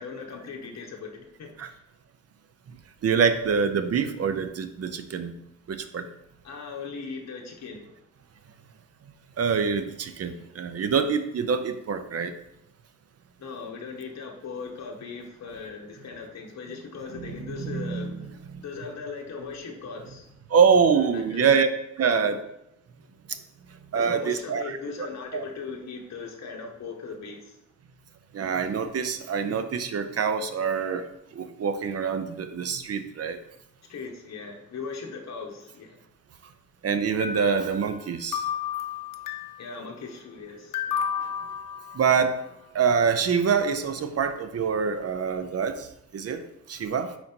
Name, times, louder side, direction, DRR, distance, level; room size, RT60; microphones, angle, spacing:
voice 1, 0.0-1.8 6.4-7.9 13.4-18.3 18.6-20.3 20.9-21.6 22.0-22.4 23.9-27.6 33.9-36.0 39.6-41.0, left 5 dB, 55° left, 1 dB, 1.0 m, -39 dB
voice 2, 3.0-5.3 5.7-6.1 9.4-12.3 17.2-18.3 18.5-18.6 20.5-21.7 22.0-22.4 23.9-24.8 25.3-25.4 28.3-31.0 31.4-33.4 36.8-38.4 41.9-42.4 42.7-45.9 46.1-46.4 46.7-47.1, right 6 dB, 50° right, 9 dB, 0.6 m, -25 dB
sound 1, 37.2-38.0 38.3-39.7 40.7-42.3, left 8 dB, 75° left, 0.6 m, -32 dB
5.0 x 4.3 x 4.3 m, 0.81 s
wide cardioid pair, 120°, 32 cm